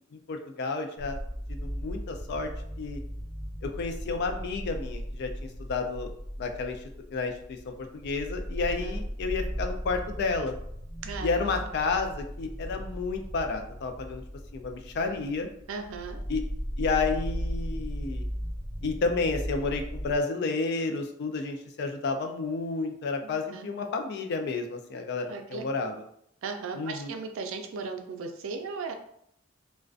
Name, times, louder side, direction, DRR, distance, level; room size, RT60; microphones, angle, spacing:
voice 1, 0.1-1.2 1.5-2.5 2.8-3.0 3.6-6.1 6.4-6.8 7.1-10.6 11.2-14.2 14.5-15.5 16.3-16.4 16.8-18.2 18.8-26.0 26.7-27.1, left 4 dB, 55° left, 5 dB, 0.3 m, -31 dB
sound 1, 1.0-20.2, equal, 35° left, 1.0 m, -37 dB
voice 2, 15.7-16.2 23.2-23.7 25.3-25.9 26.4-28.9, right 4 dB, 80° right, 5 dB, 0.4 m, -37 dB
2.4 x 2.1 x 2.3 m, 0.71 s
head